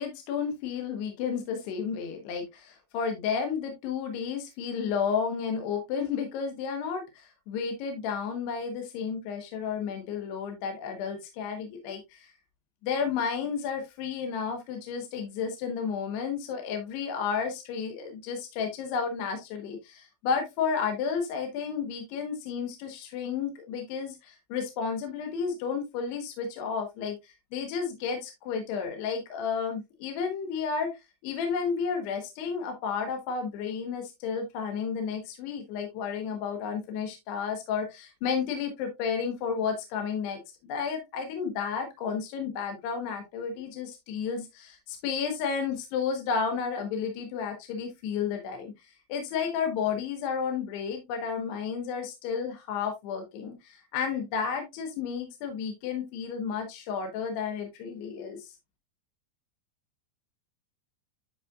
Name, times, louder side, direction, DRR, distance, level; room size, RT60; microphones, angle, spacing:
voice 1, 0.0-12.3 12.8-58.5, left 6 dB, 75° left, 5 dB, 3.1 m, -32 dB
10.5 x 5.7 x 2.3 m, 0.21 s
omnidirectional pair, 5.1 m